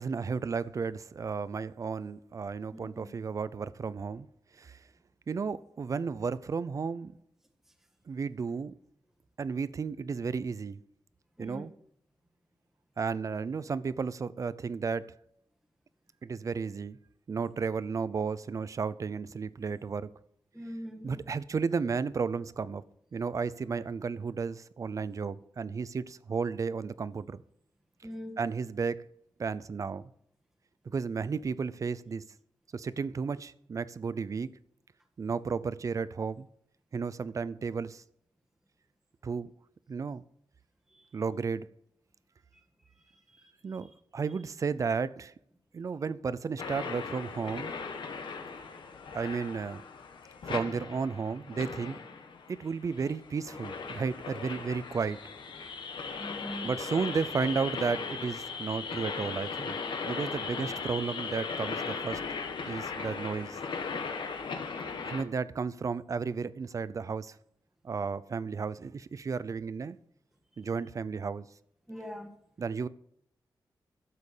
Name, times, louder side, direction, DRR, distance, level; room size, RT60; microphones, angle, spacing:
voice 1, 0.0-4.3 4.6-4.8 5.3-7.1 8.1-8.7 9.4-10.8 11.4-11.7 13.0-15.1 16.2-17.0 17.3-20.1 21.0-22.8 23.1-27.4 28.4-29.0 29.4-30.0 30.9-32.2 32.7-34.5 35.2-36.5 36.9-38.0 39.2-39.5 39.9-40.2 41.1-41.7 43.6-45.3 45.7-47.7 49.1-49.8 50.4-52.0 52.5-55.2 56.6-59.8 60.0-62.2 62.7-63.6 65.0-67.4 67.8-70.0 70.6-71.5 72.6-72.9, right 5 dB, 45° right, 0.5 m, -33 dB
voice 2, 2.7-3.1 11.4-11.7 20.5-21.2 28.0-28.3 40.9-41.0 56.1-56.7 71.9-72.3, equal, 5° right, 1.6 m, -42 dB
sound 1, 46.6-65.2, left 5 dB, 90° left, 1.5 m, -38 dB
12.5 x 7.6 x 6.6 m
wide cardioid pair, 165°, 8 cm